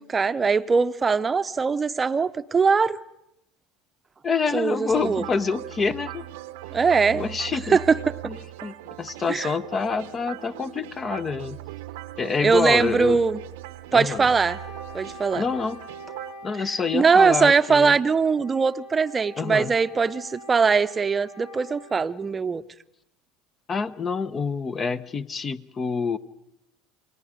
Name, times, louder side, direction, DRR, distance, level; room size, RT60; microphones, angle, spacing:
voice 1, 0.0-3.0 4.5-5.2 6.7-7.2 7.7-8.2 9.3-9.5 12.4-13.4 13.9-14.6 14.9-15.4 16.6-22.6, right 5 dB, 25° right, 0.8 m, -21 dB
voice 2, 4.2-6.3 7.1-7.8 8.2-8.4 8.6-11.6 12.2-13.2 13.9-14.3 15.3-15.8 16.4-18.0 19.4-19.7 23.7-26.2, left 5 dB, 30° left, 0.9 m, -27 dB
sound 1, 4.9-16.3, right 16 dB, 75° right, 0.8 m, -39 dB
Wind instrument woodwind instrument, 14.1-22.1, right 1 dB, 80° left, 2.3 m, -44 dB
29.0 x 20.0 x 5.1 m
hypercardioid pair, 80°, 0 cm